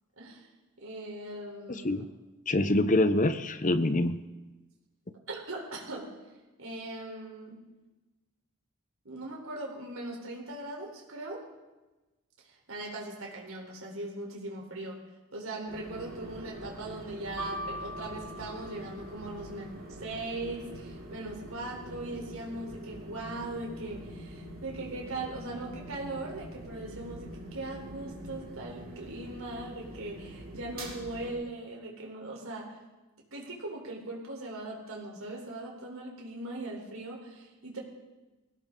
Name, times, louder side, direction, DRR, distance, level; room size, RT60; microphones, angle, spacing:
voice 1, 0.2-0.5 0.8-2.0 5.3-6.1 6.6-7.6 9.0-11.5 12.4-15.0 15.3-19.7 20.0-32.8 33.3-37.8, right 2 dB, 75° right, -1 dB, 3.9 m, -40 dB
voice 2, 1.7-2.1 2.5-4.2, left 1 dB, 35° left, 11 dB, 0.8 m, -25 dB
sound 1, 15.7-31.3, right 1 dB, 45° right, 3.3 m, -45 dB
sound 2, 17.4-19.5, equal, ahead, 4.3 m, -41 dB
21.0 x 16.5 x 3.8 m, 1.1 s
head